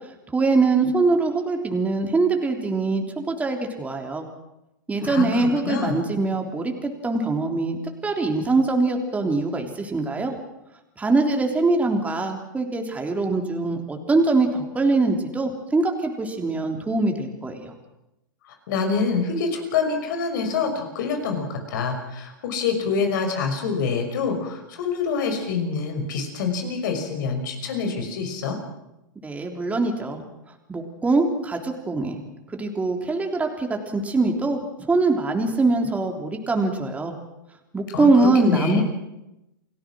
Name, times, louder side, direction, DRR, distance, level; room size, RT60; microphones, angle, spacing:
voice 1, 0.3-4.3 4.9-10.3 11.0-17.7 29.2-30.2 30.7-32.2 32.5-34.6 34.9-37.1 37.7-38.8, right 3 dB, 10° right, 3 dB, 3.4 m, -23 dB
voice 2, 5.0-6.0 18.7-28.6 37.9-38.8, left 5 dB, 65° left, 5 dB, 5.9 m, -26 dB
29.0 x 18.0 x 6.3 m, 0.90 s
hypercardioid pair, 110°, 11 cm